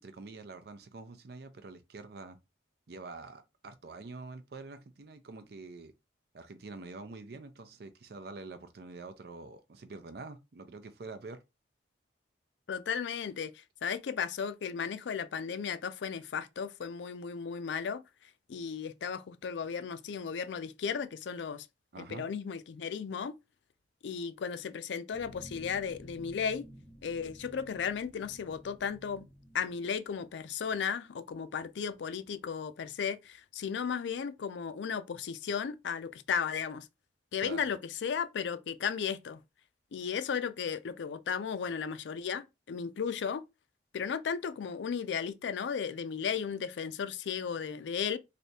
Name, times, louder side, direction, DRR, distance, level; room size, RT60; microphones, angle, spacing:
voice 1, 0.0-2.4 2.9-5.9 6.3-11.4 21.9-22.3 37.4-37.7, right 3 dB, 60° right, 0.5 m, -46 dB
voice 2, 12.7-18.0 18.5-21.7 22.0-23.3 24.0-26.7 27.0-29.3 29.5-36.9 37.3-39.4 39.9-43.4 43.9-48.2, left 6 dB, 85° left, 0.4 m, -35 dB
sound 1, 25.1-30.4, equal, 10° right, 0.6 m, -53 dB
3.3 x 2.6 x 2.7 m
head